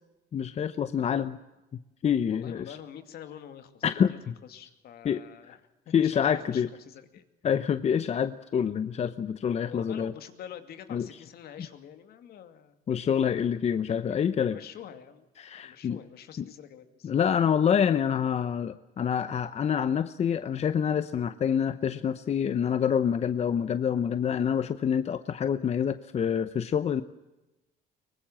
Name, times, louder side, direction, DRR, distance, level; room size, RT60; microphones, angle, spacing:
voice 1, 0.3-1.4 2.0-2.7 3.8-4.3 5.0-5.2 5.5-5.6 5.9-6.7 7.4-10.1 10.9-11.1 12.9-14.6 15.4-16.0 16.4-16.5 17.0-27.0, left 8 dB, 40° left, 12 dB, 0.8 m, -27 dB
voice 2, 2.3-5.6 5.9-7.2 9.4-12.8 14.1-15.3 15.6-17.1, left 9 dB, 65° left, 8 dB, 2.4 m, -46 dB
23.0 x 20.0 x 7.5 m, 1.0 s
cardioid pair, 110°, 17 cm